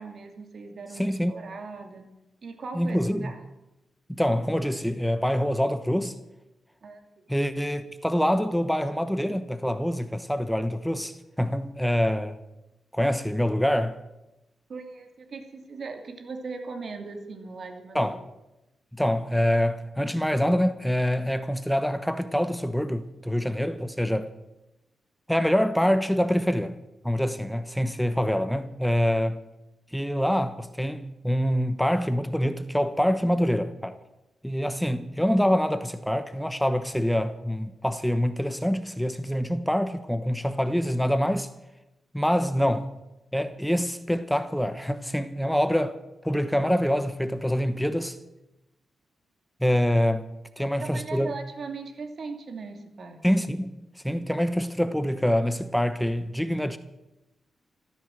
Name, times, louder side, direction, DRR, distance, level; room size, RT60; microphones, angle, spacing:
voice 1, 0.0-2.1 2.4-3.4 6.8-7.0 14.7-18.2 50.6-53.2, right 4 dB, 60° right, 2.5 m, -39 dB
voice 2, 0.9-1.3 2.7-3.3 4.1-6.2 7.3-12.4 12.9-14.0 17.9-18.2 18.9-24.3 25.3-26.8 27.0-29.4 29.9-34.0 34.4-41.5 42.1-42.9 43.3-46.0 46.2-48.2 49.6-50.3 50.6-51.3 53.2-53.8 54.0-56.8, equal, 5° left, 1.1 m, -25 dB
14.5 x 13.0 x 7.7 m
cardioid pair, 80°, 0 cm